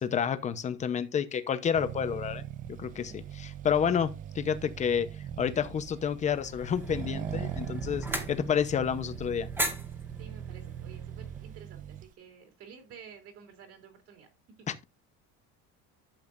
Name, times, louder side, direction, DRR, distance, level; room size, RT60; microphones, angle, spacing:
voice 1, 0.0-9.5 14.7-14.8, left 7 dB, 20° left, 0.9 m, -30 dB
Accelerating revving vroom, 1.8-12.1, right 10 dB, 25° right, 0.4 m, -40 dB
sound 1, 6.2-11.6, right 1 dB, 5° right, 1.5 m, -39 dB
voice 2, 10.2-14.3 14.6-14.7, right 7 dB, 45° right, 3.4 m, -51 dB
12.0 x 7.9 x 2.6 m
cardioid pair, 175°, 34 cm